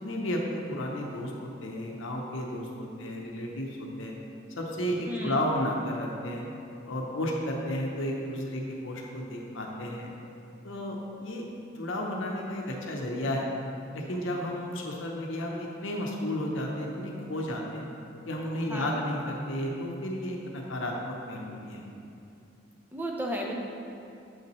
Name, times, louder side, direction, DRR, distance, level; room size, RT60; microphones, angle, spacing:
voice 1, 0.0-4.1 4.6-6.4 6.9-10.1 10.6-11.4 11.7-13.5 13.9-17.9 18.3-21.8, left 1 dB, 75° left, 0 dB, 0.7 m, -33 dB
voice 2, 5.1-5.4 18.7-19.0 22.9-23.5, equal, 10° right, -1 dB, 0.6 m, -33 dB
7.3 x 5.6 x 3.1 m, 2.6 s
head